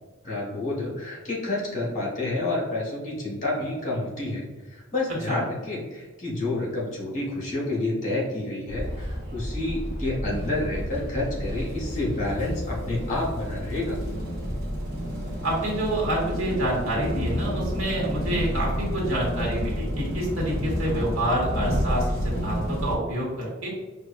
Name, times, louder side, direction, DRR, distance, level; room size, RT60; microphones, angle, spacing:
voice 1, 0.2-14.0, left 2 dB, 35° left, -4 dB, 1.4 m, -29 dB
sound 1, 8.7-23.0, equal, 45° right, 1.0 m, -30 dB
voice 2, 15.4-23.7, right 1 dB, 85° right, -4 dB, 1.4 m, -27 dB
4.6 x 2.4 x 2.5 m, 1.3 s
head